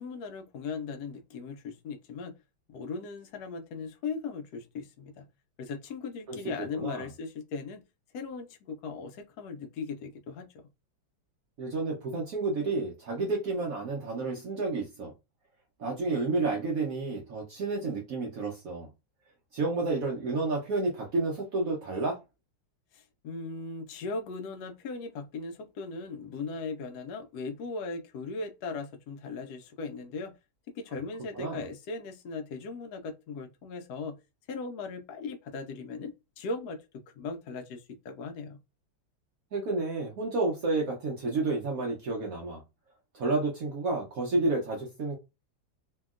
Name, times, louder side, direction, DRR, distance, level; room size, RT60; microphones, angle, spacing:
voice 1, 0.0-2.3 2.7-5.2 5.6-7.8 8.1-10.5 22.9-30.3 30.7-34.1 34.5-36.8 37.2-38.6, left 4 dB, 75° left, 0.9 m, -38 dB
voice 2, 6.7-7.1 11.6-15.1 15.8-18.9 19.5-22.2 31.3-31.6 39.5-42.6 43.1-45.2, right 3 dB, 65° right, 0.9 m, -30 dB
2.8 x 2.7 x 2.3 m
omnidirectional pair, 2.1 m